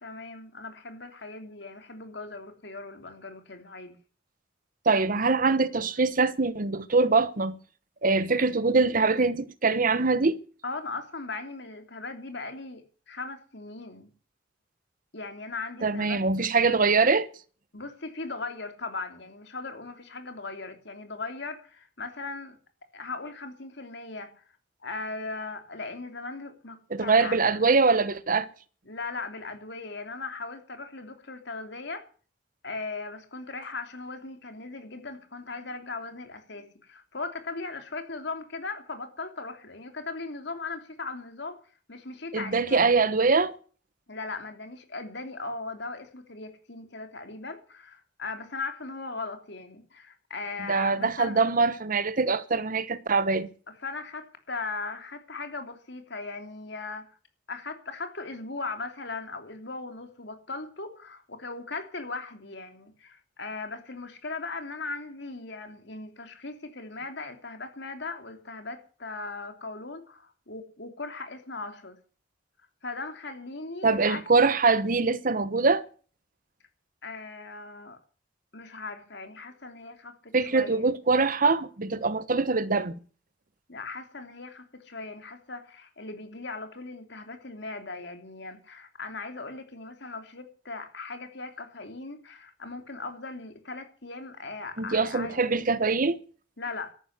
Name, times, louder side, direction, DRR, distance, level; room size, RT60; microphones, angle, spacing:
voice 1, 0.0-3.9 10.6-14.1 15.1-16.5 17.7-22.6 22.9-24.4 24.8-27.4 28.9-32.0 32.6-41.6 41.9-43.0 44.1-51.4 53.8-57.1 57.5-72.0 72.8-74.2 77.0-78.0 78.5-80.9 83.7-95.4 96.6-96.9, left 3 dB, 65° left, 3.2 m, -38 dB
voice 2, 4.8-7.6 8.0-10.4 15.8-17.3 26.9-28.5 42.3-43.5 50.7-53.5 73.8-75.8 80.3-83.0 94.8-96.2, right 4 dB, 50° right, 1.0 m, -23 dB
13.5 x 11.0 x 8.2 m
head